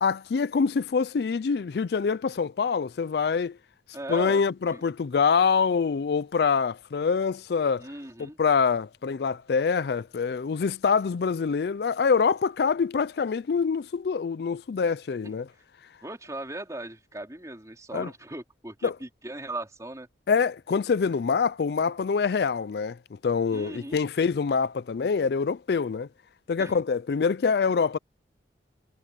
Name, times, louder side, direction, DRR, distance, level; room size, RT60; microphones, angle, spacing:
voice 1, 0.0-3.6 4.1-7.9 8.2-15.5 17.9-18.1 18.8-18.9 20.3-26.1 26.5-28.0, left 5 dB, 65° left, 0.4 m, -25 dB
voice 2, 3.9-4.4 4.7-4.8 7.8-8.4 15.2-15.3 16.0-20.1 23.5-24.0 26.6-26.8, right 1 dB, 20° right, 3.8 m, -38 dB
head